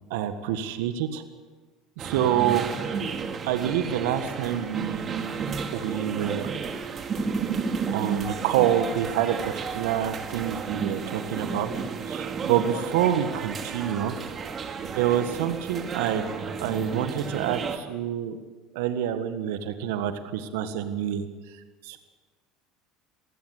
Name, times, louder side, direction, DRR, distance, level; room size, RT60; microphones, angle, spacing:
voice 1, 0.1-1.2 2.0-2.6 3.4-5.1 5.7-6.5 7.9-11.7 12.1-14.1 14.9-16.3 16.6-18.4 18.7-22.0, right 10 dB, 75° right, 9 dB, 1.6 m, -27 dB
sound 1, 2.0-17.8, right 5 dB, 40° right, 2.5 m, -32 dB
24.0 x 16.0 x 8.1 m, 1.4 s
hypercardioid pair, 75°, 0 cm